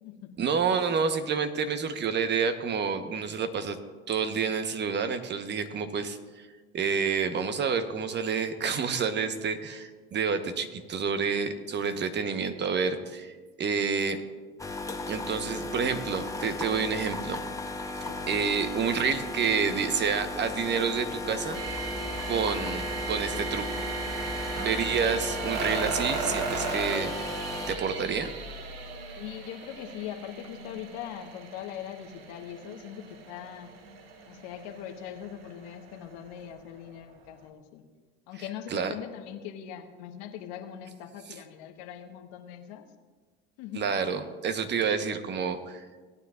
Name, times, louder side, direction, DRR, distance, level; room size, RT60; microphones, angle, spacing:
voice 1, 0.4-3.8 4.1-6.5 6.7-14.2 15.1-17.4 17.8-17.9 18.3-21.6 22.3-23.7 24.6-27.1 27.7-28.3 38.7-38.9 43.7-46.0, right 6 dB, 35° right, 9 dB, 1.1 m, -29 dB
sound 1, 14.6-27.8, left 2 dB, 10° left, 1.0 m, -36 dB
voice 2, 18.0-18.5 29.2-33.7 34.3-37.8 38.3-42.9 43.6-43.9, left 10 dB, 65° left, 5 dB, 1.2 m, -41 dB
sound 2, 21.5-36.5 37.1-37.2, right 4 dB, 85° right, 1.2 m, -37 dB
18.0 x 9.5 x 2.5 m, 1.4 s
hypercardioid pair, 85°, 29 cm